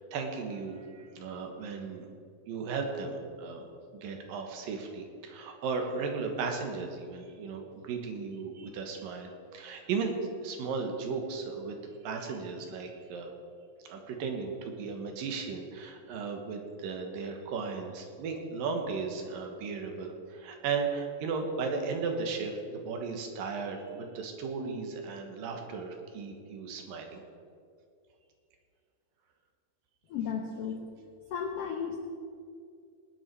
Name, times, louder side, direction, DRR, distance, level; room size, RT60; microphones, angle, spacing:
voice 1, 0.1-2.1 2.5-3.7 3.9-10.2 10.4-11.8 12.0-13.3 13.8-27.2, right 5 dB, 75° right, 3 dB, 3.0 m, -36 dB
voice 2, 30.1-30.8 31.3-32.0, left 7 dB, 85° left, 3 dB, 1.3 m, -34 dB
19.5 x 9.7 x 4.6 m, 2.4 s
omnidirectional pair, 4.1 m